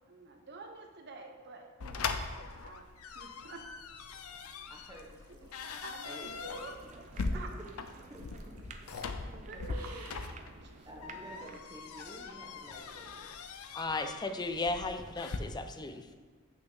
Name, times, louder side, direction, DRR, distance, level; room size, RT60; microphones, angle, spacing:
voice 1, 0.1-2.9 3.1-3.6 5.8-6.8 7.3-7.5 9.0-9.1 9.5-10.3 10.6-10.9, right 2 dB, 55° right, 3 dB, 1.0 m, -48 dB
sound 1, 1.8-15.4, left 4 dB, 85° left, 0.5 m, -41 dB
sound 2, 3.1-8.8 9.1-9.3 9.7-10.5 11.4-11.6, right 3 dB, 80° right, 1.0 m, -56 dB
voice 2, 4.7-6.9 7.3-7.7 8.1-9.8 10.8-13.3 16.1-16.2, equal, 15° right, -2 dB, 1.1 m, -52 dB
sound 3, 6.2-11.6, right 4 dB, 35° right, 0.5 m, -52 dB
voice 3, 13.7-16.1, left 3 dB, 20° left, 7 dB, 0.5 m, -35 dB
8.2 x 5.8 x 3.9 m, 1.4 s
head